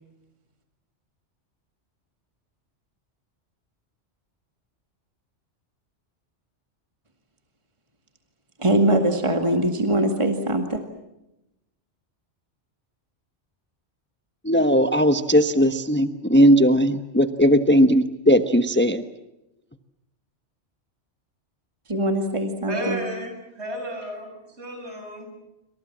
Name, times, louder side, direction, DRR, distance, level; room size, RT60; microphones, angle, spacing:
voice 1, 8.6-10.8 21.9-23.0, right 1 dB, 25° right, 5 dB, 2.2 m, -22 dB
voice 2, 14.4-19.0, equal, 10° left, 8 dB, 1.1 m, -18 dB
voice 3, 22.7-25.3, equal, 65° right, 4 dB, 7.9 m, -33 dB
28.0 x 25.5 x 7.4 m, 0.90 s
omnidirectional pair, 1.2 m